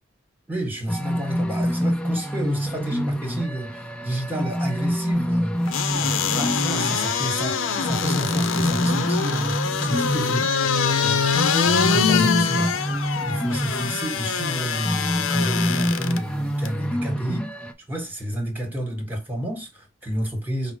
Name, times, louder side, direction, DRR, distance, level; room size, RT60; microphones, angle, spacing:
voice 1, 0.5-12.8 13.2-20.7, right 1 dB, 10° right, 1.4 m, -30 dB
sound 1, 0.9-17.7, equal, 5° left, 0.6 m, -27 dB
sound 2, 5.7-16.2 16.7-16.8, left 6 dB, 85° left, 0.6 m, -24 dB
5.4 x 2.0 x 4.5 m
head